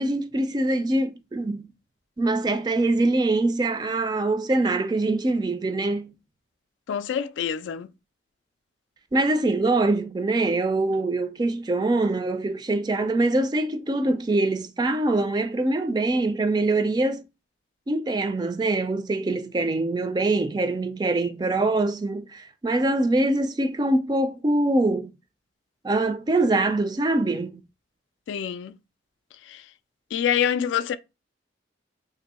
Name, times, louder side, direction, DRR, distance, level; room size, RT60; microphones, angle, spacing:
voice 1, 0.0-1.7 2.2-6.1 9.1-17.2 17.9-25.1 25.8-27.6, right 2 dB, 25° right, 0.3 m, -24 dB
voice 2, 6.9-7.9 28.3-28.8 29.5-29.6 30.1-31.0, left 8 dB, 90° left, 0.3 m, -26 dB
2.9 x 2.6 x 4.1 m
head